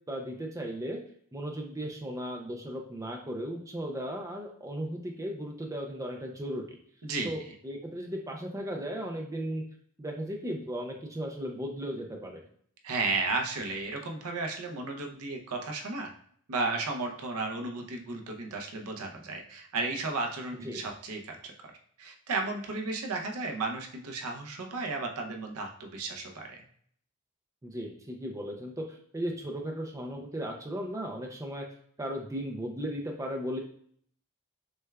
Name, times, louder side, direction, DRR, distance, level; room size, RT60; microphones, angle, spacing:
voice 1, 0.1-1.0 1.3-6.6 7.2-9.6 10.0-12.4 20.6-20.8 27.6-31.7 32.0-33.6, equal, 15° right, 2 dB, 0.4 m, -36 dB
voice 2, 7.0-7.3 12.8-16.1 16.5-21.5 22.0-26.6, right 3 dB, 80° right, 2 dB, 0.7 m, -34 dB
6.1 x 2.3 x 2.2 m, 0.62 s
head